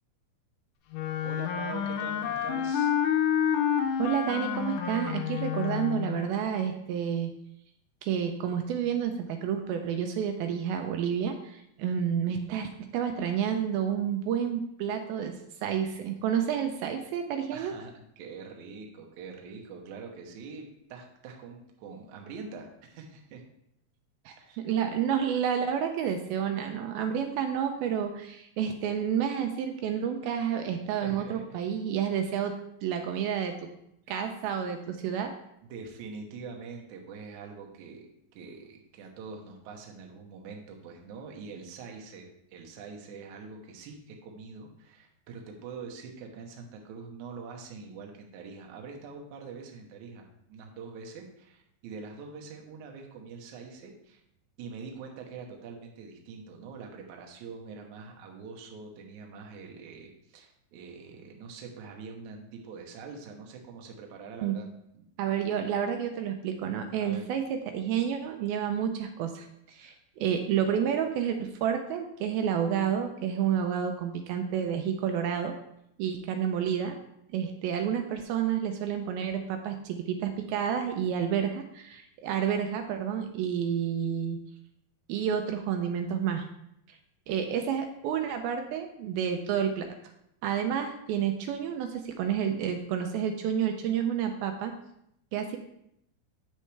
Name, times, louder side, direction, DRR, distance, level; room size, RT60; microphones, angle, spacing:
Wind instrument woodwind instrument, 0.9-6.3, left 9 dB, 85° left, 1.8 m, -29 dB
voice 1, 1.2-2.9 17.5-23.4 24.4-24.6 31.0-31.5 35.6-54.2 54.6-65.1 67.0-67.3, right 5 dB, 65° right, 1 dB, 2.0 m, -44 dB
voice 2, 4.0-7.3 8.0-15.4 15.6-17.7 24.3-32.6 32.8-33.5 34.1-35.3 64.4-64.6 65.2-75.5 76.0-77.0 77.3-84.4 85.1-86.5 87.3-89.9 90.4-94.7 95.3-95.6, right 8 dB, 85° right, 5 dB, 2.4 m, -30 dB
8.8 x 6.4 x 3.3 m, 0.78 s
omnidirectional pair, 4.4 m